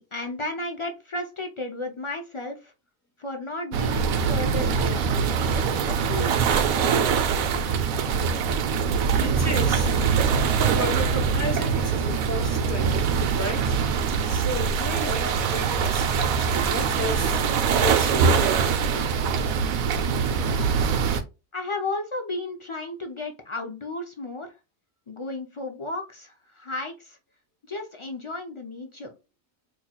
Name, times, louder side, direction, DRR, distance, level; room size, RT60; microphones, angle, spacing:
voice 1, 0.0-2.7 3.2-5.1 5.5-6.9 21.5-24.5 25.1-27.2 27.7-29.1, left 2 dB, 50° left, 0.3 m, -33 dB
sound 1, 3.7-21.2, right 6 dB, 80° right, 1.0 m, -23 dB
voice 2, 9.2-10.2 10.7-14.0 14.3-18.9, left 1 dB, 15° left, 1.0 m, -33 dB
4.3 x 3.0 x 2.3 m
omnidirectional pair, 1.5 m